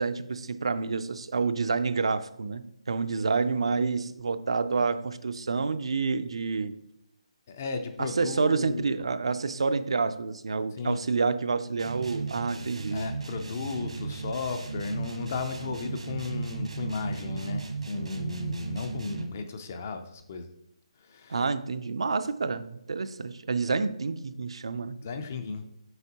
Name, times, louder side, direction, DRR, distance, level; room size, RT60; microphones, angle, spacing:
voice 1, 0.0-6.7 8.0-13.1 21.3-25.0, right 4 dB, 55° right, 11 dB, 0.4 m, -28 dB
voice 2, 7.5-8.9 10.8-11.0 12.9-20.5 21.1-21.4 23.7-23.9 25.0-25.6, left 4 dB, 20° left, 8 dB, 0.4 m, -35 dB
sound 1, 11.8-19.4, right 4 dB, 80° right, 1.4 m, -36 dB
7.9 x 5.2 x 2.8 m, 0.80 s
hypercardioid pair, 175°, 3 cm